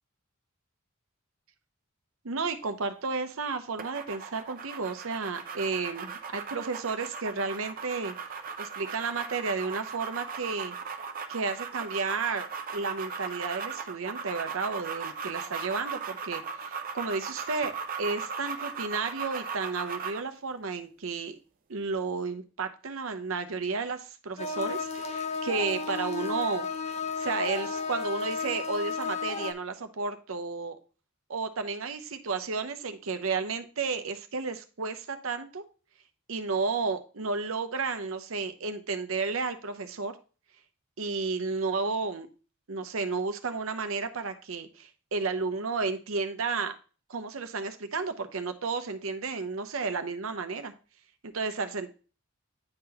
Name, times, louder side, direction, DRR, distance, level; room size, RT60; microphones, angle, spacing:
voice 1, 2.2-8.1 8.6-10.7 11.3-12.5 12.7-17.7 18.0-21.4 21.7-26.7 27.2-30.8 31.3-35.6 36.3-40.1 41.0-42.3 42.7-46.7 47.1-50.7 51.2-51.9, right 4 dB, 80° right, 0.8 m, -32 dB
sound 1, 3.8-20.3, right 5 dB, 45° right, 0.6 m, -38 dB
sound 2, 24.4-29.5, left 4 dB, 35° left, 0.4 m, -33 dB
9.8 x 3.9 x 2.9 m
head